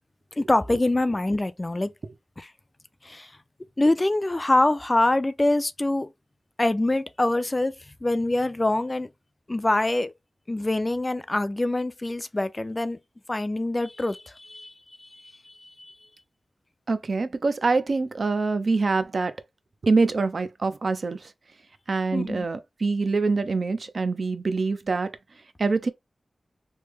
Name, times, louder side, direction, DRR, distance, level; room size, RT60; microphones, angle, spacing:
voice 1, 0.4-1.9 2.4-2.5 3.0-3.3 3.8-6.1 6.6-7.7 8.0-9.1 9.5-10.1 10.5-13.0 13.3-14.7 15.0-15.1 15.5-15.6 22.1-22.5, left 2 dB, 25° left, 0.3 m, -24 dB
voice 2, 16.9-19.3 19.8-21.3 21.9-25.1 25.6-25.9, right 3 dB, 60° right, 0.5 m, -25 dB
3.2 x 2.1 x 3.4 m
wide cardioid pair, 75°, 0 cm